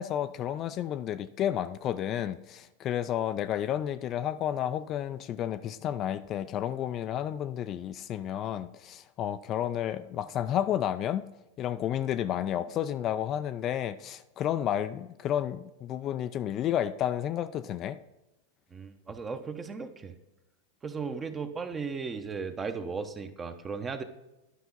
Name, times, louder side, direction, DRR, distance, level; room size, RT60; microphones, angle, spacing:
voice 1, 0.0-11.2 11.6-18.0, left 10 dB, 35° left, 11 dB, 0.4 m, -31 dB
voice 2, 18.7-20.1 20.8-24.0, right 5 dB, 20° right, 8 dB, 0.9 m, -36 dB
11.0 x 5.6 x 4.0 m, 0.98 s
figure-of-eight pair, 95°, 0 cm